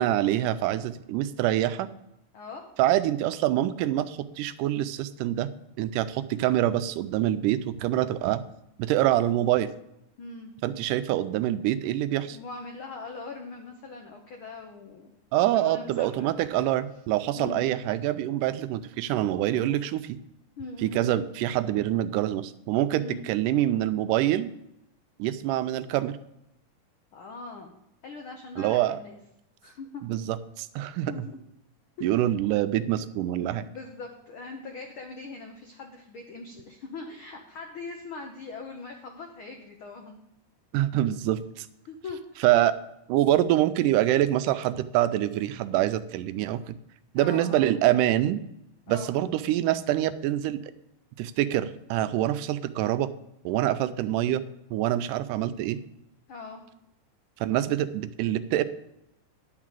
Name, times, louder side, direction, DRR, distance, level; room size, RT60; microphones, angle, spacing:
voice 1, 0.0-1.9 2.8-5.5 5.8-8.4 8.8-9.7 10.6-12.4 15.3-20.2 20.8-24.5 25.2-26.2 28.6-29.0 30.0-31.1 32.0-33.7 40.7-41.7 42.4-42.7 43.1-46.7 47.1-48.4 48.9-50.6 51.2-53.1 53.5-54.4 54.7-55.8 57.4-58.6, right 13 dB, 85° right, 12 dB, 2.1 m, -25 dB
voice 2, 10.2-10.5 12.3-15.1 15.5-16.7 17.4-17.7 20.6-21.1 23.0-23.2 27.1-27.7 28.0-29.2 29.6-30.0 31.1-31.4 32.0-32.1 33.6-40.2 41.9-42.4 47.1-47.7 48.9-49.1 56.3-56.6, left 4 dB, 90° left, 3 dB, 1.1 m, -41 dB
10.0 x 4.9 x 7.5 m, 0.83 s
omnidirectional pair, 3.7 m